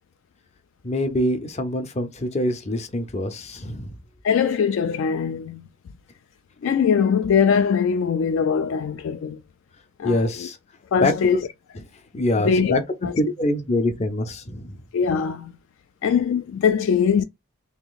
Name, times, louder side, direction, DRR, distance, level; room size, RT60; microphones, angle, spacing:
voice 1, 0.8-3.9 10.0-10.6 11.0-11.1 12.1-12.8 13.2-14.8, left 1 dB, 30° left, 0.6 m, -24 dB
voice 2, 4.2-5.7 6.6-9.4 10.0-10.5 10.9-11.5 12.4-12.8 13.0-13.1 14.9-15.5 16.0-17.2, left 6 dB, 65° left, 0.3 m, -21 dB
3.1 x 2.9 x 3.9 m
head